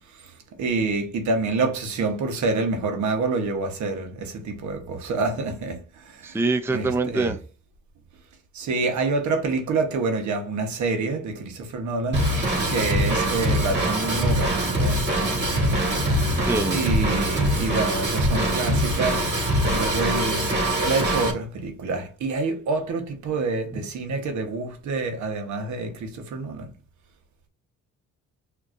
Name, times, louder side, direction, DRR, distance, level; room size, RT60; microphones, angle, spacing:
voice 1, 0.6-5.8 6.0-6.4 6.7-7.3 8.5-16.1 16.7-19.3 19.7-20.5 20.8-26.7, right 3 dB, 70° right, 1.2 m, -27 dB
voice 2, 6.2-7.4 16.4-16.8, right 3 dB, 10° right, 0.5 m, -24 dB
Drum kit / Drum, 12.1-21.3, right 1 dB, 35° right, 1.9 m, -23 dB
6.2 x 2.9 x 2.5 m
cardioid pair, 90°, 30 cm